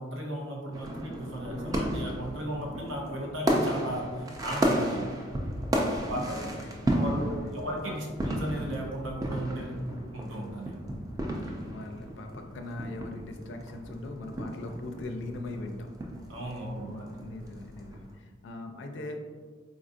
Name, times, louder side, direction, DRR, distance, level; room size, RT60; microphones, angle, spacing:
voice 1, 0.0-5.3 6.1-6.5 6.9-9.8 10.1-10.8 16.3-17.2, right 1 dB, 85° right, -1 dB, 0.7 m, -36 dB
sound 1, 0.7-18.1, right 1 dB, 20° right, 0.3 m, -33 dB
voice 2, 5.6-7.4 7.8-8.0 9.5-9.8 11.3-15.9 16.8-19.2, left 2 dB, 65° left, 4 dB, 0.4 m, -41 dB
3.7 x 2.5 x 2.5 m, 1.5 s
head